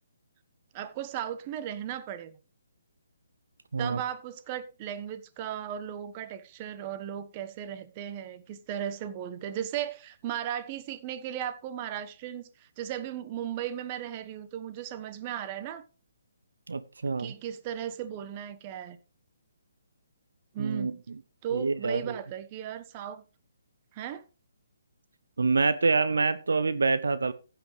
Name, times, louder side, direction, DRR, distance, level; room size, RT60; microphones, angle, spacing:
voice 1, 0.7-2.4 3.8-15.8 17.2-19.0 20.5-21.0 21.4-23.2 23.9-24.2, right 10 dB, 30° right, 1.2 m, -36 dB
voice 2, 16.7-17.3 20.6-21.0 21.5-22.2 25.4-27.3, right 4 dB, 70° right, 0.8 m, -26 dB
15.5 x 8.9 x 3.3 m
figure-of-eight pair, 140°, 0 cm